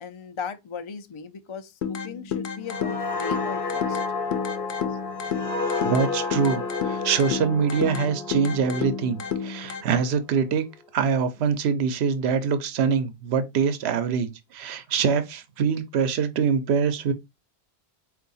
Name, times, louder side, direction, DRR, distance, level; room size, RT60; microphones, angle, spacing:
voice 1, 0.0-4.0, left 6 dB, 45° left, 0.4 m, -37 dB
sound 1, 1.8-9.8, left 7 dB, 90° left, 0.9 m, -31 dB
sound 2, 2.7-10.1 10.5-10.8, left 4 dB, 60° left, 1.0 m, -31 dB
voice 2, 5.8-10.7 10.9-17.1, right 6 dB, 75° right, 0.9 m, -24 dB
4.5 x 2.5 x 3.9 m
omnidirectional pair, 1.1 m